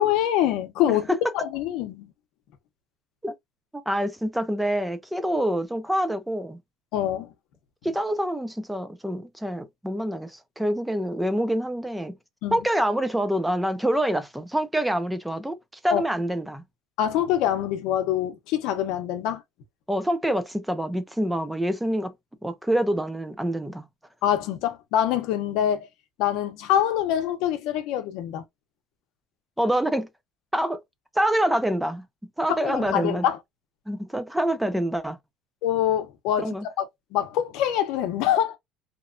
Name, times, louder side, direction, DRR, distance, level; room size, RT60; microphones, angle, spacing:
voice 1, 0.0-1.1 1.3-2.1 6.9-7.3 12.4-12.6 15.9-16.0 17.0-19.4 24.2-25.9 26.2-28.4 32.5-33.4 35.6-36.9 37.1-38.6, left 11 dB, 60° left, 0.6 m, -25 dB
voice 2, 3.7-6.6 7.8-12.2 12.5-15.6 15.8-16.6 19.9-22.1 22.4-23.8 29.6-30.1 30.5-30.8 31.1-32.1 32.4-33.2 33.9-35.2 36.4-36.7, right 1 dB, 5° right, 0.3 m, -26 dB
2.9 x 2.2 x 2.4 m
cardioid pair, 175°, 0 cm